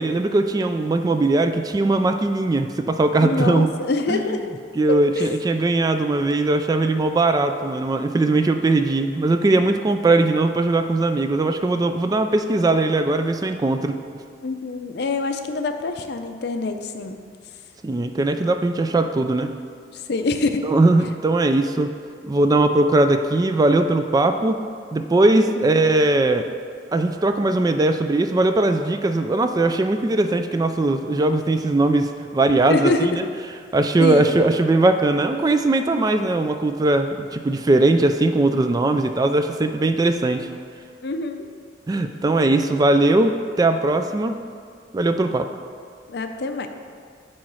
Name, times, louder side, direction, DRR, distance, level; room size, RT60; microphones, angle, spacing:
voice 1, 0.0-3.7 4.1-4.4 4.8-14.0 17.8-19.5 20.6-21.9 22.2-24.6 24.9-26.5 26.9-33.2 33.7-40.5 41.9-44.4 44.9-45.5, right 2 dB, 20° right, 8 dB, 0.3 m, -20 dB
voice 2, 3.2-4.5 5.1-5.3 14.4-17.2 19.9-20.7 25.4-25.8 32.7-33.3 34.0-34.3 41.0-41.5 46.1-46.7, left 3 dB, 65° left, 7 dB, 0.5 m, -25 dB
8.6 x 3.1 x 6.2 m, 2.1 s
head